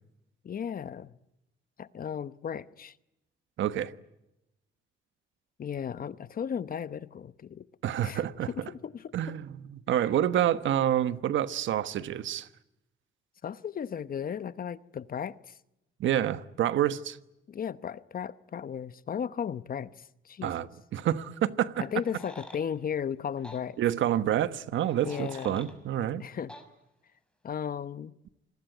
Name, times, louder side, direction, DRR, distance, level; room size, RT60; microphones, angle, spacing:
voice 1, 0.4-1.1 1.8-3.0 5.6-7.7 8.0-8.2 8.6-9.3 13.4-15.6 17.5-20.5 21.8-23.8 25.0-25.6 26.2-26.5 27.4-28.1, left 8 dB, 45° left, 1.0 m, -35 dB
voice 2, 3.6-3.9 7.8-8.5 9.1-12.5 16.0-17.2 20.4-20.7 20.9-21.9 23.8-26.2, right 11 dB, 75° right, 1.2 m, -28 dB
sound 1, 22.0-22.6 23.4-23.6 24.8-25.7 26.5-26.7, left 1 dB, 5° left, 5.3 m, -47 dB
26.5 x 20.5 x 9.2 m
cardioid pair, 90°, 20 cm